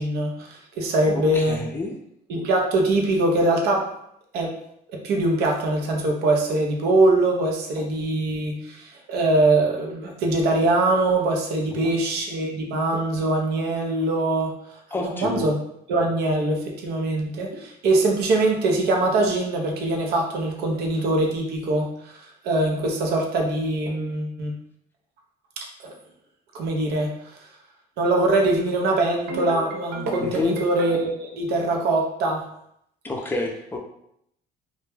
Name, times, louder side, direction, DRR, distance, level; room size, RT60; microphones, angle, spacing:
voice 1, 0.0-1.6 2.3-3.9 4.3-4.5 4.9-14.5 15.0-15.6 15.9-22.1 22.4-24.5 25.8-25.9 26.5-27.1 28.0-32.4, right 2 dB, 70° right, 1 dB, 0.6 m, -22 dB
voice 2, 1.1-2.0 11.8-11.9 14.9-15.5 30.2-30.6 33.0-33.8, left 2 dB, 10° left, 1 dB, 0.4 m, -29 dB
2.2 x 2.1 x 3.1 m, 0.75 s
cardioid pair, 110°, 17 cm